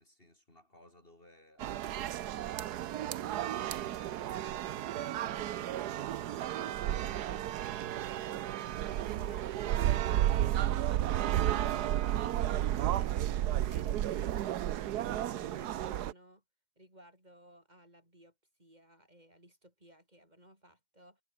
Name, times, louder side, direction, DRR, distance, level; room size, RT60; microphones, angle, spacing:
voice 1, 0.0-8.7 10.3-10.8, left 1 dB, 35° left, 4.5 m, -62 dB
sound 1, 1.6-16.1, right 12 dB, 85° right, 1.4 m, -32 dB
voice 2, 9.0-9.6 10.3-10.5 13.5-16.4 16.8-18.3 18.6-21.2, right 1 dB, 25° right, 7.9 m, -57 dB
omnidirectional pair, 1.6 m